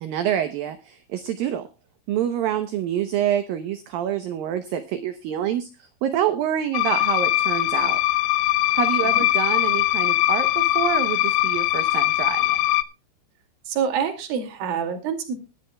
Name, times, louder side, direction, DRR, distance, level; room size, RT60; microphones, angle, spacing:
voice 1, 0.0-1.7 2.1-8.0 8.7-12.6, right 10 dB, 75° right, 10 dB, 2.1 m, -27 dB
sound 1, 6.7-12.8, left 16 dB, 85° left, 3.0 m, -21 dB
voice 2, 13.7-15.3, right 7 dB, 60° right, 6 dB, 3.8 m, -27 dB
21.0 x 11.0 x 2.3 m, 0.28 s
omnidirectional pair, 5.2 m